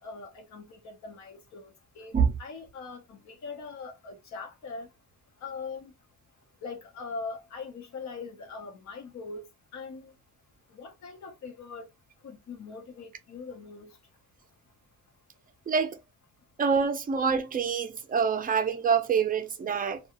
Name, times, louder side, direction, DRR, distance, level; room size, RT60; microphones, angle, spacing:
voice 1, 0.0-4.9 5.4-5.9 6.6-9.4 9.7-10.1 10.7-11.9 12.2-13.9, left 4 dB, 65° left, 1.0 m, -41 dB
voice 2, 15.7-16.0 16.6-20.0, right 6 dB, 30° right, 0.5 m, -26 dB
2.4 x 2.3 x 2.9 m
cardioid pair, 90°, 30 cm